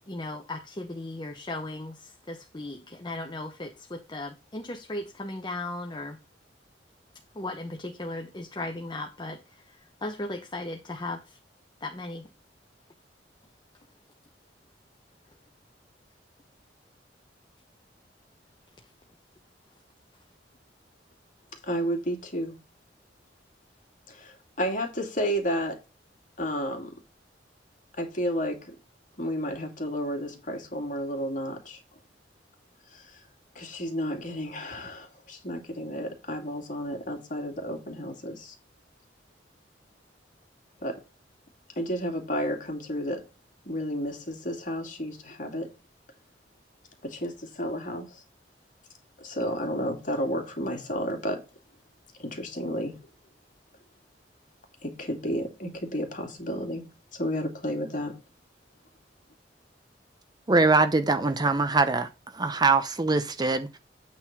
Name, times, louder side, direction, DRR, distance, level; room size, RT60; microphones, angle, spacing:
voice 1, 0.1-6.2 7.3-11.4 11.8-12.3, left 2 dB, 25° left, 1.0 m, -37 dB
voice 2, 21.6-22.6 24.1-25.8 26.4-26.9 28.0-28.7 29.2-31.8 32.9-33.2 33.5-38.5 40.8-41.0 41.8-43.2 43.7-45.7 47.0-48.2 49.2-51.4 52.2-53.0 54.8-56.8 57.1-58.2, equal, 45° left, 2.6 m, -32 dB
voice 3, 60.5-62.1 62.3-63.8, right 3 dB, 25° right, 0.7 m, -23 dB
8.7 x 3.9 x 6.0 m
head